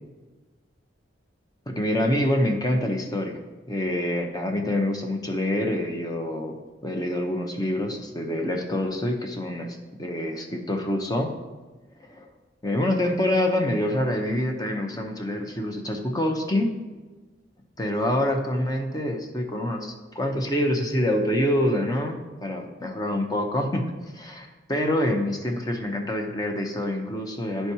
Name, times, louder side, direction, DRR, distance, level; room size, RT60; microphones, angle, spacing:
voice 1, 1.7-3.4 3.7-6.5 6.8-11.3 12.1-12.3 12.6-16.7 17.8-23.9 24.1-27.7, left 1 dB, 20° left, 3 dB, 0.8 m, -26 dB
12.5 x 4.5 x 2.8 m, 1.2 s
head